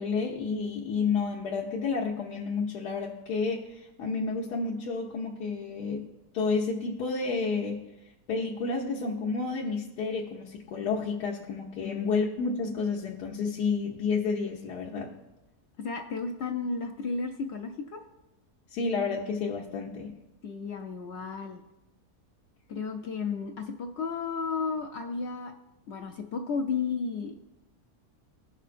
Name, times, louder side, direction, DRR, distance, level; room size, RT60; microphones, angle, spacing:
voice 1, 0.0-6.0 6.3-7.8 8.3-15.1 18.7-20.2, left 4 dB, 90° left, -3 dB, 1.4 m, -30 dB
voice 2, 15.8-18.0 20.4-21.6 22.7-25.5 25.9-27.4, left 5 dB, 65° left, 3 dB, 0.7 m, -33 dB
16.5 x 5.6 x 2.5 m, 0.99 s
omnidirectional pair, 1.7 m